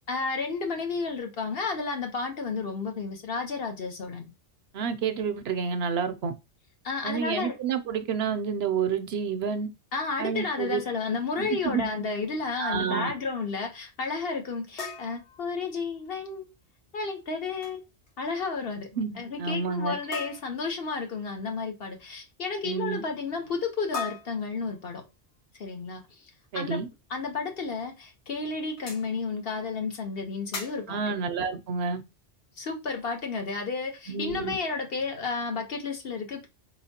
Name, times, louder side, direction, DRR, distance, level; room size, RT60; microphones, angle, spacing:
voice 1, 0.1-4.3 6.8-7.5 9.9-16.5 16.9-17.8 18.2-18.9 19.2-25.0 25.6-26.0 26.5-26.8 27.1-31.2 32.6-36.5, left 4 dB, 55° left, 1.2 m, -32 dB
voice 2, 4.7-6.3 7.0-9.7 10.2-10.8 11.4-11.9 12.6-13.1 18.9-20.0 22.6-23.0 26.5-26.9 30.9-32.0 34.1-34.6, right 6 dB, 65° right, 0.8 m, -29 dB
sound 1, 14.8-16.1 17.4-17.8 18.1-18.3 18.6-18.7 20.1-20.8 23.9-25.1 27.1-27.2 27.8-27.9 28.8-29.1 30.5-31.0, left 4 dB, 75° left, 1.5 m, -39 dB
4.3 x 3.9 x 2.8 m
omnidirectional pair, 1.2 m